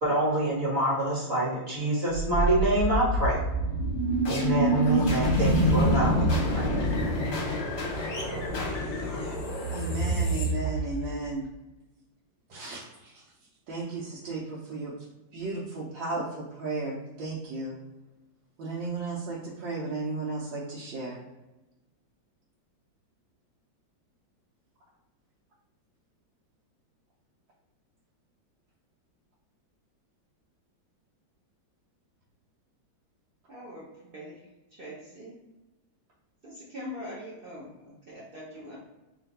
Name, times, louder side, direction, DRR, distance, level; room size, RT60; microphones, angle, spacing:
voice 1, 0.0-3.4 4.3-6.3 6.5-6.7, right 1 dB, 35° right, -8 dB, 1.4 m, -26 dB
sound 1, 2.1-11.2, right 1 dB, 50° left, 0.9 m, -26 dB
voice 2, 9.7-11.5 12.5-15.1 15.3-17.8 18.6-21.2, right 3 dB, 75° right, -6 dB, 1.4 m, -35 dB
voice 3, 33.5-34.4 34.7-35.3 36.4-38.8, left 1 dB, 60° right, -6 dB, 0.5 m, -42 dB
3.3 x 2.5 x 4.0 m, 1.0 s
omnidirectional pair, 2.1 m